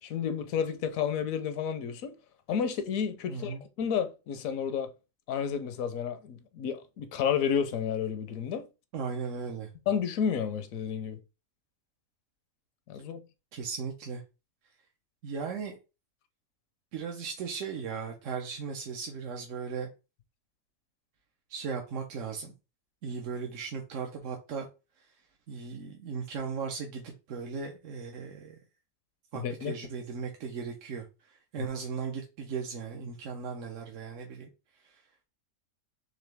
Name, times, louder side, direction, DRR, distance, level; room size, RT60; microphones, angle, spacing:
voice 1, 0.0-2.1 2.5-4.9 5.3-8.7 9.9-11.2 12.9-13.2 29.3-29.7 31.6-31.7, left 7 dB, 75° left, 1.0 m, -31 dB
voice 2, 3.3-3.6 8.9-9.7 13.5-14.2 15.2-15.7 16.9-19.9 21.5-22.5 23.0-24.7 25.0-25.1 25.5-28.6 29.3-34.5 34.8-35.0, right 5 dB, 70° right, 1.0 m, -37 dB
3.9 x 2.9 x 3.3 m
omnidirectional pair, 1.4 m